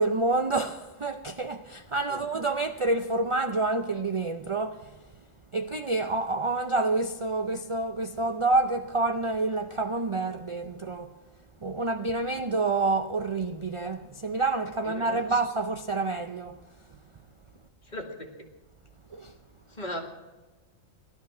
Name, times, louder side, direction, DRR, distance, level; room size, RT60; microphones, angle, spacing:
voice 1, 0.0-4.9 5.5-11.1 11.6-16.6 19.1-19.3, right 3 dB, 45° right, 0.4 m, -28 dB
voice 2, 14.8-15.4 17.8-18.5 19.7-20.0, equal, 35° left, 2.1 m, -38 dB
18.0 x 12.5 x 6.1 m
omnidirectional pair, 1.4 m